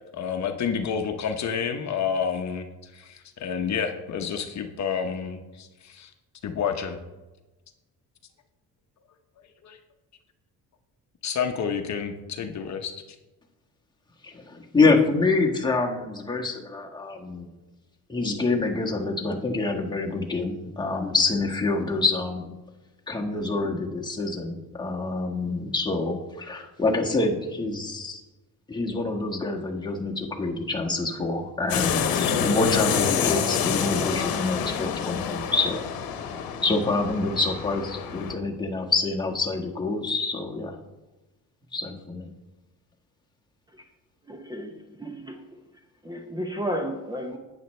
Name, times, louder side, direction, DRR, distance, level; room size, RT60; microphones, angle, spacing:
voice 1, 0.1-2.7 2.9-6.1 6.4-7.0 9.6-9.8 11.2-12.9, left 7 dB, 50° left, 6 dB, 0.9 m, -29 dB
voice 2, 14.2-17.5 18.1-22.5 23.1-28.2 28.7-35.8 36.6-40.7 41.7-42.3, left 3 dB, 10° left, 0 dB, 1.4 m, -26 dB
sound 1, 31.7-38.3, left 7 dB, 75° left, 1.1 m, -27 dB
voice 3, 44.3-45.6 46.0-47.4, equal, 10° right, 4 dB, 0.8 m, -33 dB
11.0 x 8.9 x 3.2 m, 1.1 s
cardioid pair, 115°, 36 cm